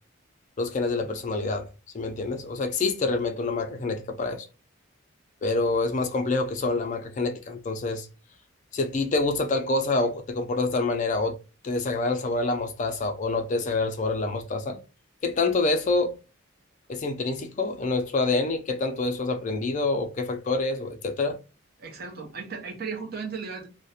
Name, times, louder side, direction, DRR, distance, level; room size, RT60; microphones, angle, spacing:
voice 1, 0.6-1.7 1.9-4.5 5.4-8.1 8.7-11.4 11.6-14.8 15.2-16.1 16.9-21.4, left 3 dB, 35° left, 0.3 m, -27 dB
voice 2, 21.8-23.7, right 5 dB, 45° right, 0.5 m, -35 dB
2.4 x 2.1 x 2.7 m
head